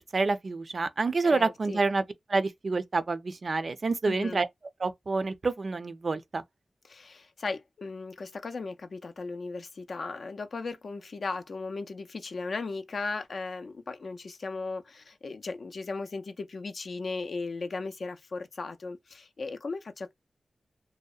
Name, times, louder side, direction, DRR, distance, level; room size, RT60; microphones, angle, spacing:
voice 1, 0.1-2.0 2.3-4.5 4.8-6.4, right 3 dB, 55° right, 0.4 m, -28 dB
voice 2, 1.2-1.8 4.0-4.4 6.8-20.1, left 3 dB, 65° left, 0.3 m, -37 dB
2.7 x 2.0 x 2.3 m
wide cardioid pair, 70°, 0 cm